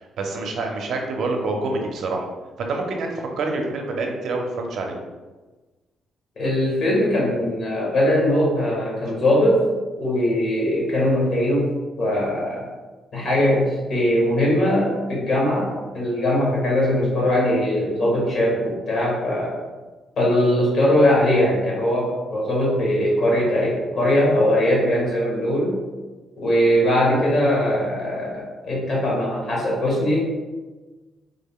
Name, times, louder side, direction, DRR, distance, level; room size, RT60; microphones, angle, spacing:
voice 1, 0.2-2.2 2.6-5.0, right 3 dB, 65° right, 2 dB, 0.6 m, -26 dB
voice 2, 6.4-9.6 10.0-11.7 12.0-12.6 13.1-19.6 20.2-25.7 26.4-30.2, left 1 dB, 55° left, -4 dB, 1.4 m, -20 dB
3.6 x 2.2 x 3.6 m, 1.3 s
cardioid pair, 120°, 0 cm